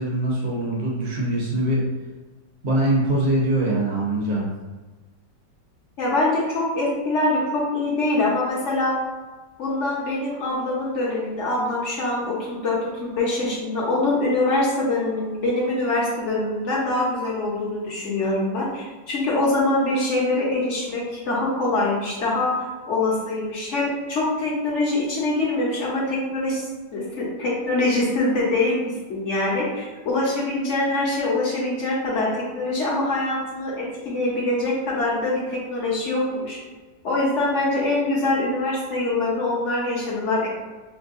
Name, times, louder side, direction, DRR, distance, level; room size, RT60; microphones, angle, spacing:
voice 1, 0.0-1.8 2.6-4.5, right 1 dB, 45° right, -3 dB, 0.9 m, -23 dB
voice 2, 6.0-9.0 9.6-26.6 26.9-28.8 29.1-36.6 37.0-40.5, left 2 dB, 50° left, -5 dB, 1.0 m, -24 dB
6.2 x 2.2 x 2.6 m, 1.3 s
omnidirectional pair, 2.1 m